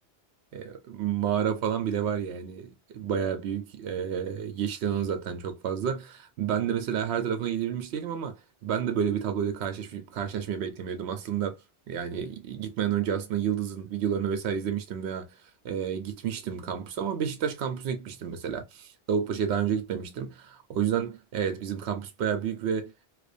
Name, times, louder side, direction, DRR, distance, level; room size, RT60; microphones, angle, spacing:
voice 1, 0.5-11.6 11.9-15.3 15.6-23.1, right 8 dB, 80° right, 0.8 m, -30 dB
2.5 x 2.2 x 2.5 m
omnidirectional pair, 1.1 m